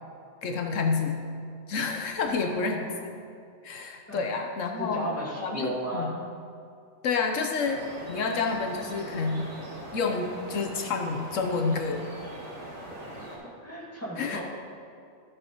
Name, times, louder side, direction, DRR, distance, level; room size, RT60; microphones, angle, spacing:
voice 1, 0.4-1.2 1.7-3.1 3.6-5.1 5.4-6.1 7.0-9.5 9.9-12.1 14.2-14.4, left 4 dB, 85° left, 3 dB, 1.2 m, -29 dB
voice 2, 2.4-3.0 4.1-4.2 4.8-6.1 13.4-14.4, equal, 10° left, -5 dB, 2.1 m, -35 dB
sound 1, 7.6-13.4, right 1 dB, 65° right, 2.8 m, -41 dB
14.5 x 7.8 x 3.0 m, 2.5 s
omnidirectional pair, 1.3 m